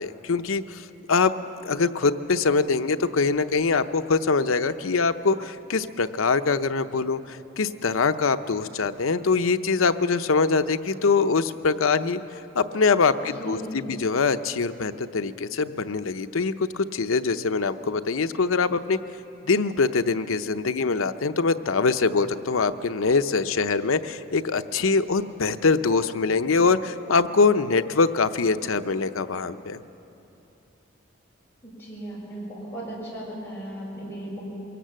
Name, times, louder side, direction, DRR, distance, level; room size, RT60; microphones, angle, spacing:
voice 1, 0.0-1.3 1.6-12.2 12.6-19.0 19.5-29.8, left 4 dB, 85° left, 10 dB, 0.7 m, -23 dB
voice 2, 13.4-13.9 31.6-34.4, right 1 dB, 10° left, -7 dB, 6.9 m, -36 dB
23.5 x 17.0 x 7.6 m, 2.9 s
head